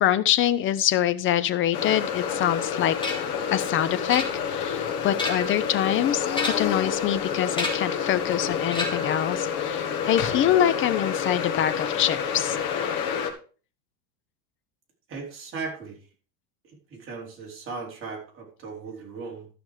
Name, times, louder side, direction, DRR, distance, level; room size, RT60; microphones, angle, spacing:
voice 1, 0.0-3.0 3.5-12.6, left 11 dB, 30° left, 14 dB, 0.6 m, -25 dB
sound 1, 1.7-13.3, left 7 dB, 50° left, 2.1 m, -29 dB
sound 2, 3.0-3.4 4.1-4.7 5.0-5.6 6.3-6.8 7.5-8.0 8.7-9.2, left 2 dB, 10° left, 3.0 m, -31 dB
voice 2, 15.1-16.0 16.6-19.5, right 4 dB, 25° right, -1 dB, 4.3 m, -37 dB
13.0 x 6.0 x 4.9 m, 0.38 s
supercardioid pair, 150°, 45 cm